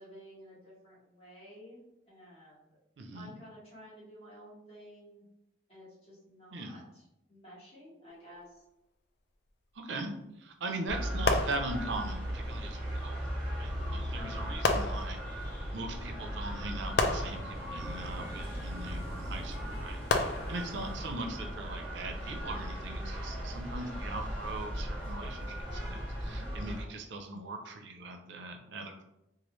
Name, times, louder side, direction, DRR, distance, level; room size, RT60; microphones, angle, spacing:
voice 1, 0.0-2.7 3.1-5.2 5.7-7.0 7.3-8.6 14.2-14.6 20.2-20.8 26.2-26.6, equal, 35° left, -8 dB, 1.4 m, -52 dB
voice 2, 3.0-3.3 6.5-6.8 9.8-10.1 10.4-15.2 15.7-29.0, right 2 dB, 80° right, 4 dB, 0.5 m, -40 dB
sound 1, 10.9-26.8, equal, 10° left, 1.2 m, -37 dB
sound 2, 11.3-12.3 13.6-13.7 14.6-15.6 17.0-18.3 20.1-21.1 21.8-22.1, left 3 dB, 65° left, 0.3 m, -32 dB
Wind / Waves surf, 14.1-24.1, equal, 15° right, 1.2 m, -48 dB
3.1 x 2.4 x 2.9 m, 0.87 s
head